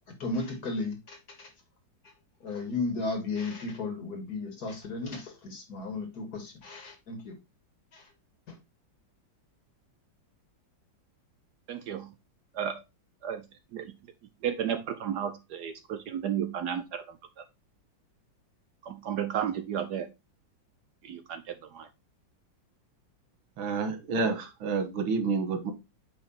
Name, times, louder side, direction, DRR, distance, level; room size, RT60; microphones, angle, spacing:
voice 1, 0.2-1.5 2.4-7.4 7.9-8.0 8.5-8.6, left 3 dB, 55° left, 2.1 m, -34 dB
voice 2, 11.7-12.1 12.5-12.8 13.2-13.5 13.7-14.0 14.4-17.4 18.8-20.1 21.0-21.9, right 9 dB, 65° right, 1.1 m, -33 dB
voice 3, 23.6-25.7, right 4 dB, 85° right, 2.0 m, -29 dB
8.6 x 3.4 x 4.1 m
omnidirectional pair, 2.1 m